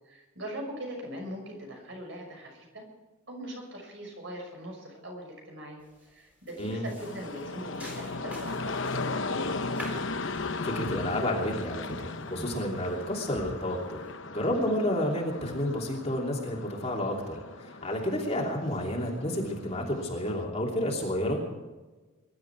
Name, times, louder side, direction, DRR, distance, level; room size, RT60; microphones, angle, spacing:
voice 1, 0.0-2.8 3.3-9.2 18.4-18.6, equal, 55° right, 1 dB, 6.2 m, -41 dB
sound 1, 5.8-6.1 6.5-14.1, equal, 5° right, 4.0 m, -46 dB
sound 2, 7.0-20.4, left 3 dB, 60° left, 0.9 m, -37 dB
voice 2, 10.3-14.0 14.3-21.4, left 1 dB, 30° left, -1 dB, 3.0 m, -31 dB
22.5 x 12.0 x 4.7 m, 1.2 s
head